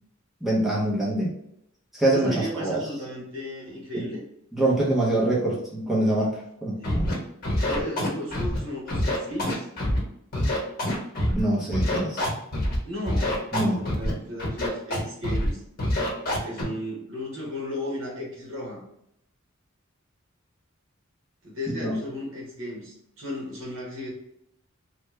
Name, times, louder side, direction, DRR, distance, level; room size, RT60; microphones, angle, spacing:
voice 1, 0.4-1.3 1.9-2.8 3.9-4.1 4.5-7.1 11.3-12.3 13.5-13.8 21.8-21.9, right 1 dB, ahead, -6 dB, 0.7 m, -25 dB
voice 2, 2.1-4.2 6.8-7.2 7.7-9.7 12.8-13.4 13.7-15.6 16.4-18.8 21.4-24.1, left 1 dB, 70° right, -3 dB, 1.3 m, -35 dB
Scratching (performance technique), 6.8-7.1 7.4-8.6 8.9-10.0 10.3-11.4 11.7-12.8 13.1-14.1 14.4-15.0 15.2-15.5 15.8-16.6, left 1 dB, 50° left, 1.1 m, -25 dB
3.2 x 2.3 x 3.1 m, 0.77 s
head